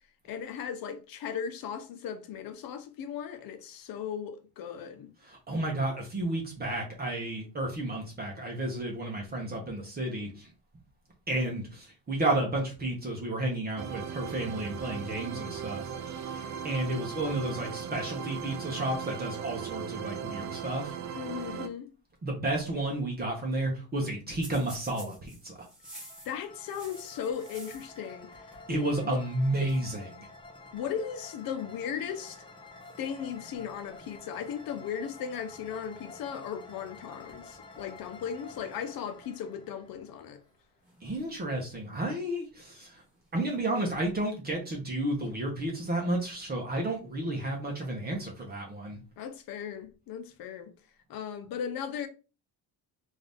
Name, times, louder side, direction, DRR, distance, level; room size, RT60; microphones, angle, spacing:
voice 1, 0.2-5.1 21.2-21.9 26.2-28.5 29.0-29.2 30.7-32.5 33.0-40.4 49.2-50.7 51.1-52.1, left 8 dB, 60° left, 0.8 m, -37 dB
voice 2, 5.2-10.5 11.3-20.9 22.2-25.5 28.7-30.3 41.0-43.0 43.3-49.0, right 1 dB, 25° right, 0.9 m, -32 dB
sound 1, 13.8-21.7, right 7 dB, 45° right, 0.5 m, -38 dB
sound 2, 24.4-28.1 28.3-29.1 29.3-29.4 29.7-30.0 30.9-31.1 31.9-32.3 32.8-33.8 36.8-37.0 37.3-38.1 38.5-38.6 39.5-39.6 40.8-41.7 42.9-43.5, right 1 dB, ahead, 1.3 m, -51 dB
sound 3, 25.8-40.6, left 3 dB, 15° left, 0.5 m, -50 dB
3.8 x 2.7 x 3.5 m
cardioid pair, 155°, 39 cm